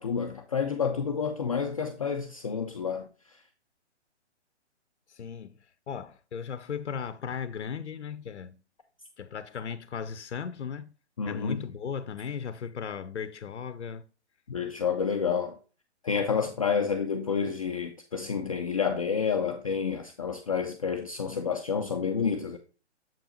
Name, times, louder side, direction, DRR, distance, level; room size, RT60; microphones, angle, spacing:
voice 1, 0.0-3.1 11.2-11.6 14.5-15.6 16.0-22.6, left 6 dB, 30° left, 0.4 m, -29 dB
voice 2, 5.1-8.6 9.2-10.9 11.2-14.0, left 7 dB, 70° left, 0.6 m, -37 dB
7.2 x 5.3 x 2.9 m
figure-of-eight pair, 135°, 35 cm